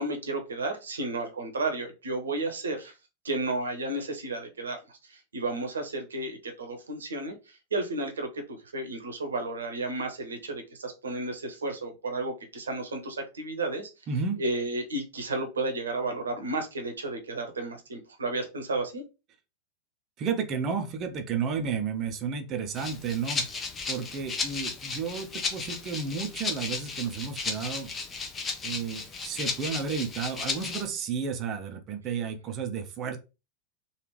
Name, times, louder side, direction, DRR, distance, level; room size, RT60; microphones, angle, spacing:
voice 1, 0.0-2.9 3.2-13.9 14.4-19.0, right 2 dB, 70° right, 5 dB, 0.8 m, -32 dB
voice 2, 14.1-14.4 20.2-23.5 23.9-27.9 28.6-33.2, right 6 dB, 35° right, 6 dB, 0.6 m, -32 dB
Rattle (instrument), 22.7-30.9, left 4 dB, 20° left, 0.7 m, -34 dB
3.4 x 2.4 x 3.0 m, 0.29 s
figure-of-eight pair, 90°, 0 cm